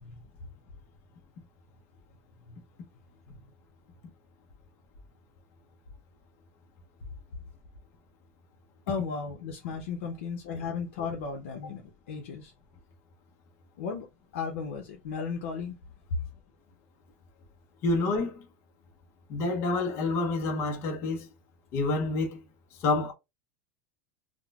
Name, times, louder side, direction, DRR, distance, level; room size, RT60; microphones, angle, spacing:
voice 1, 8.9-11.8 12.1-12.5 13.8-14.1 14.3-15.8, left 5 dB, 85° left, 0.7 m, -35 dB
voice 2, 17.8-18.4 19.3-21.3 21.7-22.4 22.8-23.1, left 3 dB, 40° left, 0.7 m, -28 dB
3.6 x 2.1 x 2.3 m
supercardioid pair, 150°, 7 cm